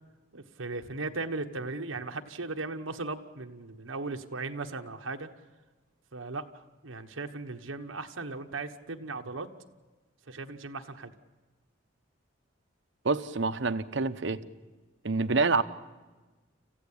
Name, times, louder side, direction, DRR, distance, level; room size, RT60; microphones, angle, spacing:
voice 1, 0.3-5.3 6.1-9.5 10.3-11.1, right 3 dB, 90° right, 5 dB, 1.2 m, -37 dB
voice 2, 13.0-14.4 15.0-15.6, right 3 dB, 65° right, 12 dB, 0.9 m, -27 dB
27.0 x 15.5 x 8.7 m, 1.3 s
head